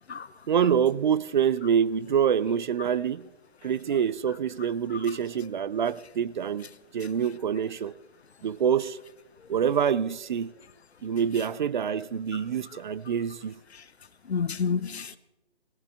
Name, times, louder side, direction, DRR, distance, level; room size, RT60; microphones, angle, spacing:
voice 1, 0.5-3.2 3.6-6.7 6.9-7.9 8.4-9.0 9.5-10.5 11.0-13.6, right 8 dB, 50° right, 0.4 m, -26 dB
voice 2, 14.3-15.2, left 6 dB, 80° left, 0.9 m, -29 dB
19.0 x 17.5 x 3.4 m
figure-of-eight pair, 140°, 32 cm